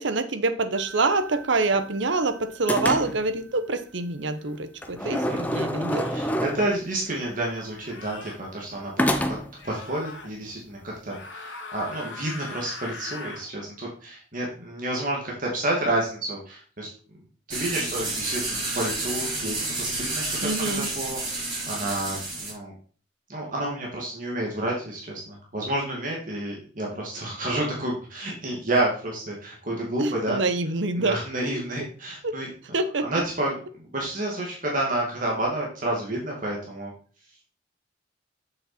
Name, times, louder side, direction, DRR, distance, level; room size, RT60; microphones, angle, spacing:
voice 1, 0.0-6.1 20.4-20.9 30.0-31.2 32.2-32.3 32.7-33.0, right 3 dB, 70° right, 10 dB, 0.9 m, -26 dB
sound 1, 0.7-2.2 2.7-3.4 4.8-6.9 9.0-9.6, equal, 10° left, 0.6 m, -28 dB
sound 2, 4.4-4.6 5.8-6.3 7.7-8.4 9.6-10.3 11.0-13.5, left 4 dB, 70° left, 1.8 m, -41 dB
voice 2, 5.0-5.4 6.1-8.9 9.3-16.9 17.5-20.4 20.6-22.7 23.3-30.4 30.9-32.5 33.0-36.9, right 1 dB, 45° right, -2 dB, 2.2 m, -30 dB
sound 3, 17.5-22.5, right 2 dB, 25° right, 3.8 m, -30 dB
7.4 x 6.5 x 4.2 m, 0.41 s
head